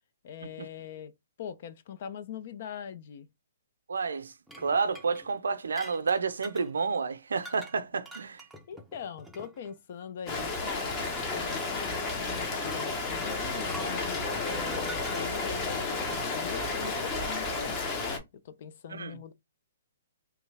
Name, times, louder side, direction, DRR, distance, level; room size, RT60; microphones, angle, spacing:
voice 1, 0.2-1.1 1.4-3.3 8.7-19.3, left 8 dB, 55° left, 0.5 m, -42 dB
voice 2, 3.9-8.4 18.9-19.2, right 5 dB, 80° right, 0.5 m, -30 dB
sound 1, 4.5-6.7 7.4-7.8 8.1-9.8 10.7-10.8 13.6-15.8, right 1 dB, ahead, 0.5 m, -47 dB
Rain, 10.3-18.2, left 3 dB, 25° left, 0.9 m, -32 dB
3.0 x 2.3 x 3.3 m
hypercardioid pair, 135°, 0 cm